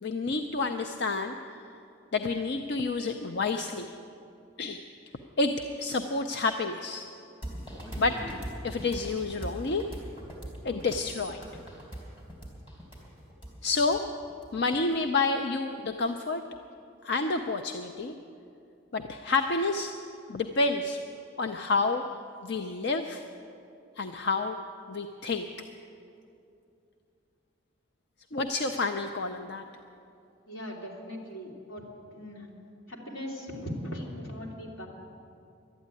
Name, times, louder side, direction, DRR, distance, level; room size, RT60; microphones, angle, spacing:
voice 1, 0.0-1.8 2.1-4.0 4.6-4.8 5.4-5.5 5.8-7.1 8.0-8.2 8.6-9.8 10.6-11.4 13.6-14.0 14.5-16.4 17.0-18.1 18.9-19.9 20.3-21.0 21.4-22.0 22.4-23.2 24.0-24.6 24.9-25.5 28.3-29.6, left 3 dB, 60° left, 6 dB, 0.5 m, -29 dB
sound 1, 7.4-15.0, equal, 25° left, 3.0 m, -41 dB
voice 2, 30.5-31.9 32.1-32.5 32.9-34.9, equal, 80° left, -2 dB, 2.8 m, -39 dB
12.0 x 9.3 x 9.7 m, 2.6 s
head